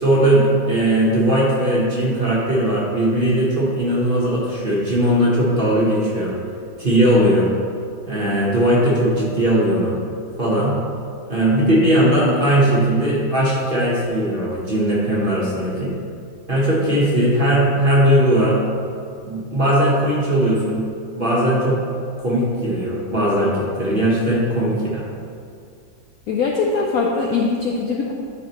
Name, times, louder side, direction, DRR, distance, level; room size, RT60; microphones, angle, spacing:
voice 1, 0.0-6.3 6.8-7.5 8.0-10.0 10.4-10.8 11.3-15.9 16.5-18.6 19.2-20.8 21.2-21.8 22.2-25.0, right 1 dB, 35° right, -6 dB, 1.0 m, -18 dB
voice 2, 26.3-28.1, left 4 dB, 75° left, -1 dB, 0.8 m, -21 dB
10.0 x 4.9 x 3.0 m, 2.3 s
omnidirectional pair, 2.1 m